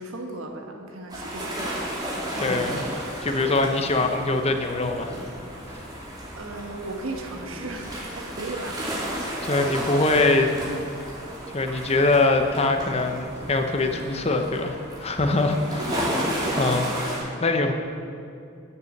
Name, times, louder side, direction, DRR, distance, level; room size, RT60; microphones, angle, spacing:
voice 1, 0.0-1.9 6.4-9.1 15.3-16.7, right 2 dB, 70° right, 3 dB, 1.4 m, -36 dB
sound 1, 1.1-17.2, equal, 20° right, 2.7 m, -33 dB
voice 2, 2.4-2.8 3.2-5.2 9.4-10.5 11.5-15.8 16.5-17.7, left 2 dB, 30° left, 5 dB, 0.8 m, -23 dB
12.5 x 6.9 x 7.2 m, 2.4 s
head